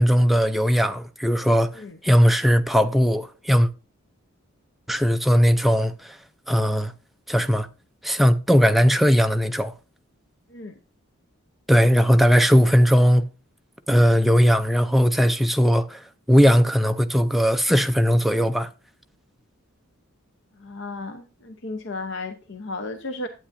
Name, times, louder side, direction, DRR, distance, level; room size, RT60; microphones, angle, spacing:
voice 1, 0.0-1.7 2.0-3.7 4.9-6.2 6.5-6.9 7.3-7.7 8.0-9.7 11.7-13.3 13.9-16.0 16.3-18.7, equal, ahead, 0.4 m, -18 dB
voice 2, 10.5-10.8 20.5-23.3, left 2 dB, 60° left, 0.8 m, -34 dB
11.5 x 8.7 x 2.6 m
head